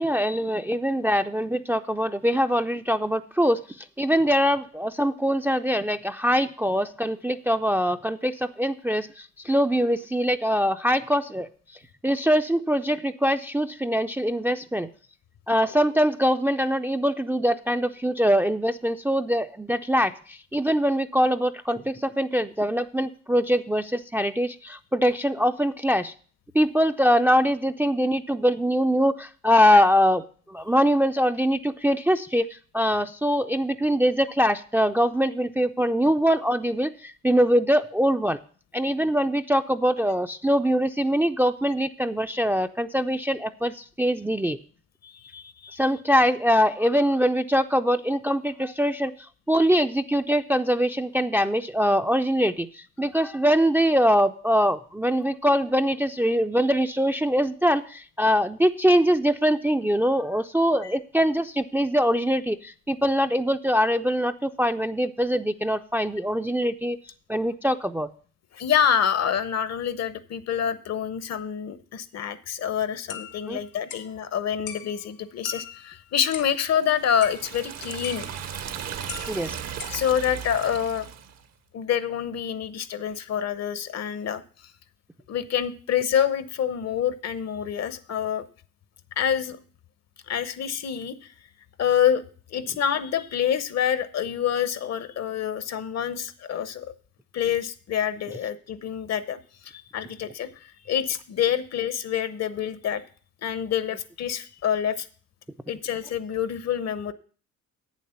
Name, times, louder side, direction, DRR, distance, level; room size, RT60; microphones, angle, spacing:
voice 1, 0.0-3.6 4.0-11.5 12.0-14.9 15.5-26.1 26.5-30.2 30.5-38.4 38.7-44.6 45.7-49.1 49.5-67.0 67.3-68.1 73.5-73.6 79.3-79.6, equal, 5° right, 8 dB, 0.4 m, -23 dB
voice 2, 45.0-45.8 53.0-53.1 68.5-78.3 79.9-81.1 81.7-84.4 85.3-88.4 89.2-89.6 90.3-91.3 91.8-92.2 92.5-96.9 97.3-103.0 103.4-105.1 105.7-107.1, left 9 dB, 60° left, 15 dB, 0.8 m, -27 dB
sound 1, 73.1-74.1 74.7-75.1 75.4-76.6 77.2-77.7 78.0-78.5 79.0-80.0, left 8 dB, 80° left, 1.1 m, -40 dB
Liquid, 76.8-81.4, right 8 dB, 60° right, 0.9 m, -36 dB
8.4 x 7.4 x 5.6 m, 0.42 s
cardioid pair, 90°, 30 cm